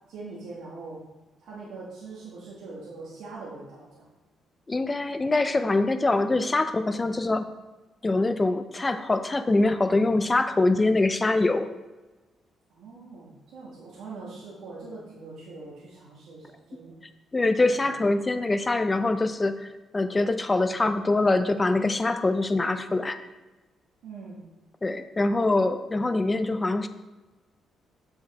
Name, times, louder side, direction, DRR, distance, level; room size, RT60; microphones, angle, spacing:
voice 1, 0.1-1.0 1.4-4.1 6.8-7.1 12.7-17.0 17.6-17.8 24.0-24.4, right 3 dB, 85° right, -5 dB, 1.4 m, -42 dB
voice 2, 4.7-7.5 8.0-11.7 17.3-19.7 19.9-23.2 24.8-26.9, left 2 dB, 15° left, 10 dB, 0.4 m, -24 dB
7.5 x 4.9 x 4.1 m, 1.1 s
cardioid pair, 150°, 0 cm